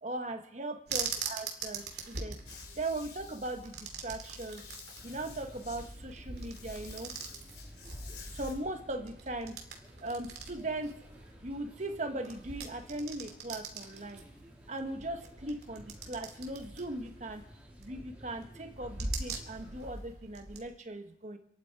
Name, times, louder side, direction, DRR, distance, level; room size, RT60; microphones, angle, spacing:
voice 1, 0.0-2.4 2.8-4.6 5.0-7.2 8.3-9.6 10.0-11.0 11.4-14.2 14.7-17.4 17.8-21.4, right 2 dB, 40° right, 6 dB, 1.5 m, -39 dB
sound 1, 0.9-20.7, right 4 dB, 65° right, 2.8 m, -43 dB
sound 2, 2.5-8.6, left 4 dB, 70° left, 3.8 m, -50 dB
sound 3, 5.0-20.0, equal, 10° right, 3.5 m, -55 dB
27.0 x 10.5 x 4.8 m, 0.77 s
head